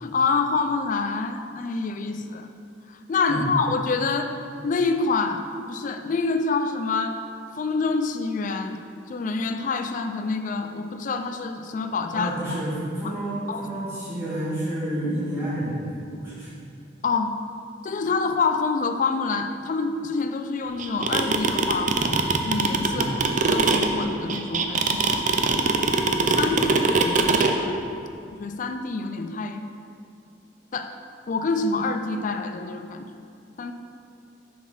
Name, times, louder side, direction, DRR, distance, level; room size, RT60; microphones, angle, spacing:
voice 1, 0.0-2.5 2.9-4.4 4.6-7.2 7.5-8.8 9.1-12.6 13.0-13.2 13.5-13.7 17.0-17.4 17.8-23.2 23.5-25.7 26.2-27.8 28.4-29.6 30.7-30.9 31.3-33.1 33.6-33.7, left 4 dB, 45° left, 7 dB, 0.4 m, -27 dB
voice 2, 12.1-16.5 22.9-23.1 26.5-26.7, right 1 dB, 20° right, -12 dB, 1.8 m, -30 dB
sound 1, 20.8-27.5, right 4 dB, 45° right, 0.5 m, -21 dB
7.2 x 4.5 x 5.7 m, 2.4 s
head